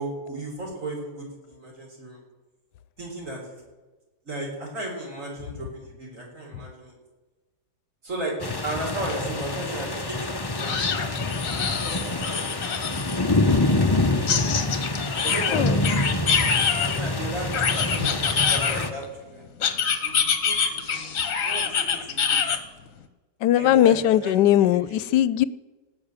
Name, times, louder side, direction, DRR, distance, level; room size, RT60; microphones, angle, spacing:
voice 1, 0.0-2.2 3.0-3.4 4.2-7.0 8.0-8.3 8.6-10.8 11.8-12.3 15.2-16.0 16.8-18.2 18.5-19.1 19.3-19.4 20.0-22.5 23.5-24.3, right 2 dB, 50° right, -2 dB, 4.4 m, -35 dB
sound 1, 8.4-18.9, left 2 dB, 25° left, 0.6 m, -26 dB
sound 2, 9.1-9.2 9.5-9.6 10.6-13.2 14.3-17.0 17.5-19.1 19.6-22.6, left 6 dB, 55° left, 1.4 m, -25 dB
voice 2, 23.4-25.4, left 12 dB, 85° left, 18 dB, 1.2 m, -19 dB
18.0 x 6.1 x 8.9 m, 1.2 s
omnidirectional pair, 1.8 m